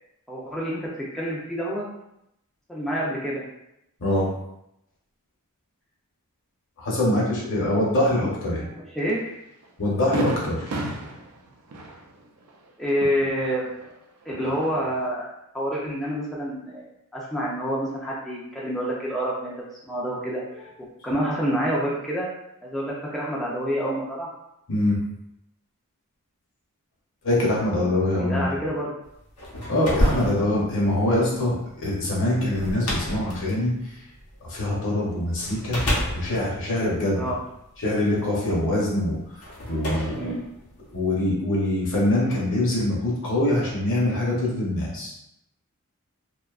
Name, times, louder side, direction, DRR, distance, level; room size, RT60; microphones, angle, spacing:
voice 1, 0.3-1.9 2.7-3.4 9.0-9.2 12.8-13.7 14.3-15.3 15.5-16.8 17.1-19.5 19.9-20.4 21.0-22.3 22.6-24.3 28.1-28.9 37.1-37.4 40.1-40.4, equal, ahead, -7 dB, 0.4 m, -27 dB
voice 2, 4.0-4.3 6.8-8.7 9.8-10.7 24.7-25.0 27.2-28.4 29.7-33.7 34.4-35.8 36.1-37.2 37.8-39.2 39.7-40.3 40.9-45.2, left 1 dB, 60° left, -4 dB, 0.9 m, -24 dB
Fireworks, 9.1-9.2 9.6-9.7 10.1-13.9 14.2-15.1, right 1 dB, 75° right, 0.4 m, -34 dB
sound 1, 29.2-34.8 35.4-37.8 38.7-38.8 39.4-41.1, equal, 90° left, 0.7 m, -30 dB
2.6 x 2.2 x 2.3 m, 0.82 s
head